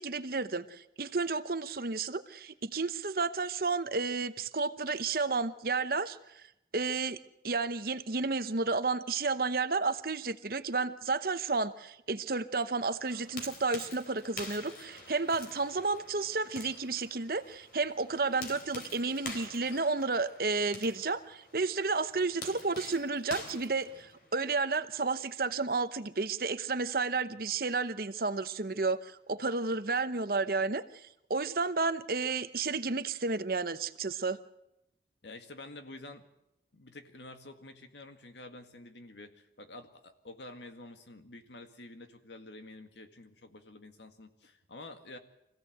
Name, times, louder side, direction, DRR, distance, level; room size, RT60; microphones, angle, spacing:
voice 1, 0.0-6.4 6.7-30.8 31.3-34.4, right 4 dB, 55° right, 11 dB, 0.9 m, -32 dB
sound 1, 13.0-24.5, left 2 dB, 55° left, 4.0 m, -47 dB
voice 2, 35.2-36.2 36.7-45.2, left 2 dB, 85° left, 7 dB, 1.9 m, -49 dB
25.0 x 16.0 x 8.0 m, 0.86 s
head